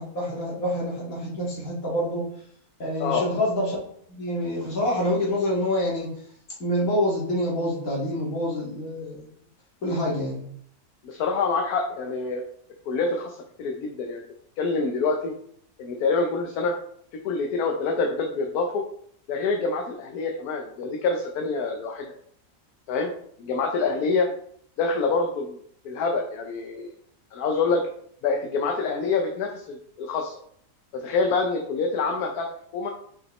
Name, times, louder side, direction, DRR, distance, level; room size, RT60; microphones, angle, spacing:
voice 1, 0.0-2.2 2.8-3.8 4.1-6.1 6.6-9.3 9.8-10.5, left 1 dB, 65° left, -4 dB, 2.4 m, -26 dB
voice 2, 11.0-12.4 12.9-14.2 14.6-15.3 15.8-16.7 17.2-18.8 19.3-22.1 22.9-23.1 23.4-24.3 24.8-25.6 25.8-26.9 27.3-27.8 28.2-30.3 30.9-32.5 32.7-32.9, left 4 dB, 80° left, 2 dB, 1.2 m, -26 dB
5.7 x 5.3 x 3.1 m, 0.64 s
omnidirectional pair, 1.6 m